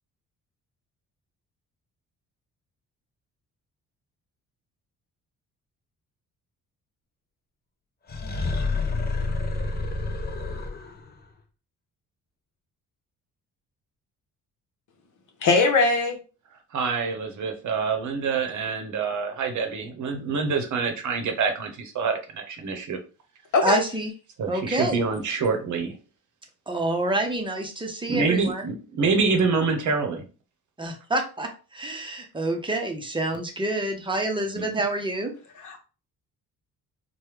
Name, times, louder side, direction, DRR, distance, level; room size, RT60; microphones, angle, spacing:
sound 1, 8.1-11.1, left 3 dB, 30° left, 0.5 m, -28 dB
voice 1, 15.4-16.2 23.5-23.8 35.6-35.8, left 3 dB, 60° left, 4 dB, 0.8 m, -20 dB
voice 2, 16.7-23.0 24.4-26.0 28.1-30.2 34.6-34.8, right 4 dB, 60° right, 6 dB, 0.8 m, -26 dB
voice 3, 23.6-24.1 24.5-25.0 26.7-28.7 30.8-35.3, right 2 dB, 15° right, 3 dB, 0.7 m, -27 dB
3.2 x 2.2 x 3.3 m, 0.34 s
cardioid pair, 95°, 34 cm